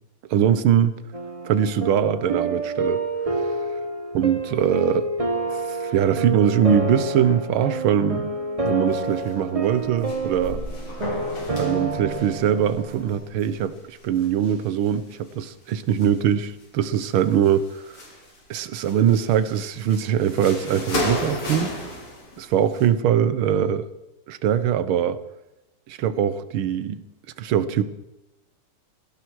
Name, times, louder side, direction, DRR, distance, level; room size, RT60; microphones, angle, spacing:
voice 1, 0.3-1.0 1.5-3.0 3.3-3.4 4.1-5.1 5.5-8.4 8.6-10.6 11.6-18.0 18.5-21.7 22.4-23.9 24.3-25.2 25.9-27.0 27.4-27.8, right 9 dB, 70° right, 1.8 m, -22 dB
sound 1, 1.1-13.2, right 2 dB, 25° right, 0.9 m, -29 dB
sound 2, 8.9-9.4 9.6-15.1 15.7-16.6 16.9-18.4 18.7-22.8, left 1 dB, 80° left, 4.3 m, -34 dB
18.5 x 16.0 x 4.8 m
omnidirectional pair, 2.4 m